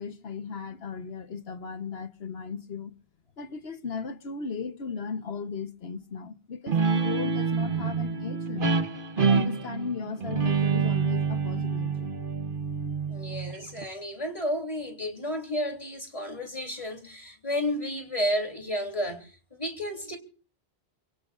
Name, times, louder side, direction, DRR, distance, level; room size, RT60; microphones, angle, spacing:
voice 1, 0.0-2.9 3.4-8.8 9.2-12.1, left 5 dB, 70° left, 1.3 m, -36 dB
Guitar, 6.7-13.8, right 5 dB, 55° right, 1.3 m, -27 dB
voice 2, 13.1-20.2, equal, 30° left, 3.3 m, -32 dB
29.0 x 17.5 x 2.5 m
omnidirectional pair, 1.1 m